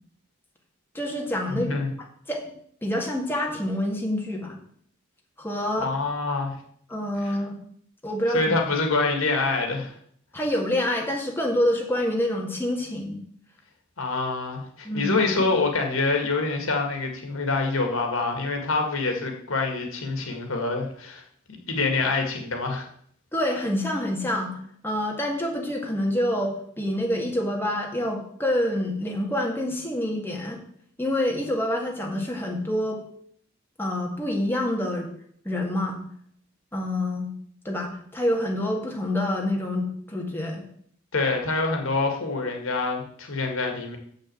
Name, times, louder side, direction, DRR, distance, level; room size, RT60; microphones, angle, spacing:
voice 1, 0.9-1.8 2.3-2.5 2.8-4.6 5.4-5.9 6.9-7.6 8.0-8.5 10.3-13.2 14.8-15.2 23.3-24.6 24.8-30.6 31.0-33.0 33.8-35.1 35.5-36.0 36.7-37.3 37.7-40.6, left 1 dB, 10° left, -1 dB, 1.9 m, -27 dB
voice 2, 1.5-1.9 5.8-6.6 7.2-7.4 8.3-9.9 14.0-21.2 21.7-22.9 41.1-44.0, left 3 dB, 85° left, 3 dB, 2.0 m, -26 dB
7.2 x 6.5 x 7.8 m, 0.63 s
head